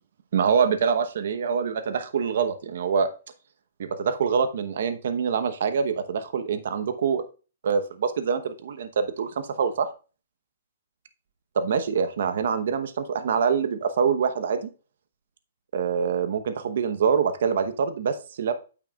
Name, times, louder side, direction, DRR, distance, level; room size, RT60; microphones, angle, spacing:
voice 1, 0.3-3.1 3.8-7.2 7.6-9.9 11.5-14.7 15.7-18.5, right 6 dB, 65° right, 10 dB, 1.0 m, -25 dB
9.0 x 8.9 x 2.4 m, 0.34 s
hypercardioid pair, 150°, 0 cm